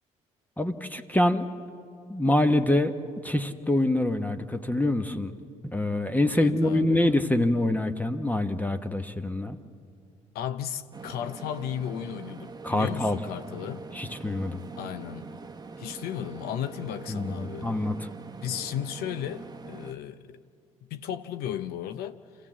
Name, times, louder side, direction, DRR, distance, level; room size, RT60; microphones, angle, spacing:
voice 1, 0.6-1.5 2.1-2.9 3.2-5.3 5.6-9.6 12.6-13.2 13.9-14.6 17.1-18.1, left 1 dB, 10° left, 1.2 m, -25 dB
voice 2, 6.3-7.1 10.3-13.8 14.8-15.3 15.8-17.7 18.4-20.4 20.9-22.5, left 10 dB, 70° left, 0.7 m, -35 dB
sound 1, 10.9-19.9, right 4 dB, 25° right, 1.0 m, -43 dB
26.5 x 15.0 x 7.5 m
hypercardioid pair, 55°, 17 cm